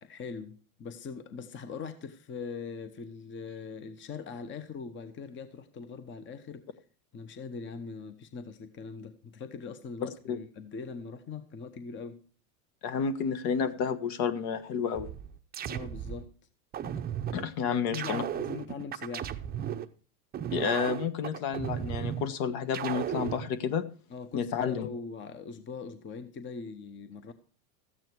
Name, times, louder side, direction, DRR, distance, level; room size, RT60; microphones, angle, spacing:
voice 1, 0.0-6.7 7.1-12.2 15.6-16.3 17.6-19.3 24.1-27.3, left 5 dB, 25° left, 1.0 m, -41 dB
voice 2, 12.8-15.1 16.8-17.0 17.3-18.2 20.5-23.8 24.3-24.9, left 6 dB, 55° left, 1.5 m, -30 dB
sound 1, 14.9-16.2 16.7-17.4 17.9-19.9 20.3-22.2 22.7-23.4, right 9 dB, 20° right, 0.7 m, -35 dB
13.5 x 9.0 x 4.5 m
supercardioid pair, 125°, 43 cm